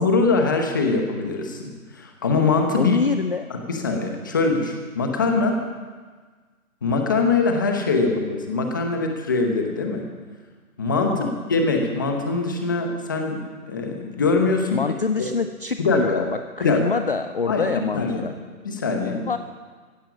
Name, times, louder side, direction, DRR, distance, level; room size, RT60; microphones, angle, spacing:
voice 1, 0.0-3.0 3.5-5.5 6.8-10.0 10.8-13.4 13.7-14.8 15.8-16.3 16.6-16.9 17.5-17.7 17.9-18.3 18.6-19.3, left 3 dB, 15° left, 3 dB, 0.9 m, -23 dB
voice 2, 2.8-3.5 5.1-5.2 11.1-11.3 14.7-18.3 19.3-19.4, left 4 dB, 40° left, 9 dB, 0.5 m, -25 dB
15.5 x 12.0 x 7.2 m, 1.5 s
hypercardioid pair, 165°, 44 cm